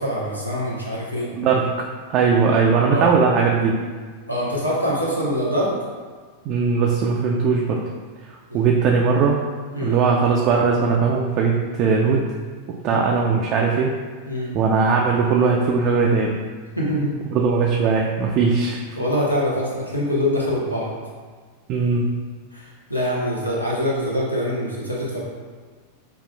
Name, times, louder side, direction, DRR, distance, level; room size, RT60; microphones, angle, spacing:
voice 1, 0.0-1.3 2.9-3.1 4.3-5.7 8.5-8.6 9.7-10.0 12.9-13.0 14.2-14.6 16.8-17.1 19.0-20.9 22.5-25.2, equal, 85° left, -5 dB, 0.7 m, -24 dB
voice 2, 1.3-3.8 6.5-7.8 8.5-9.4 9.8-12.3 12.8-13.9 14.5-16.4 17.3-18.8 21.7-22.0, right 5 dB, 40° right, -1 dB, 0.3 m, -19 dB
5.2 x 2.4 x 2.2 m, 1.5 s
figure-of-eight pair, 90°, 0 cm